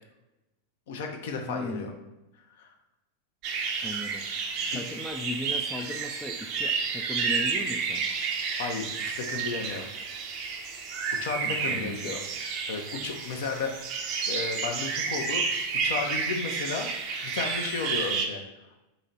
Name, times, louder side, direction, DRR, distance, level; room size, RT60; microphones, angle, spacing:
voice 1, 0.9-1.9 2.6-2.7 4.6-4.8 8.6-9.9 11.2-12.2 12.7-13.8 14.3-16.9 17.2-18.4, left 4 dB, 55° left, 4 dB, 0.6 m, -33 dB
voice 2, 1.5-2.0 3.8-4.3 4.7-8.1 11.5-12.2, left 1 dB, 5° left, 3 dB, 0.4 m, -37 dB
sound 1, 3.4-18.3, right 5 dB, 40° right, 0.6 m, -31 dB
4.1 x 2.9 x 4.0 m, 0.97 s
figure-of-eight pair, 90°, 0 cm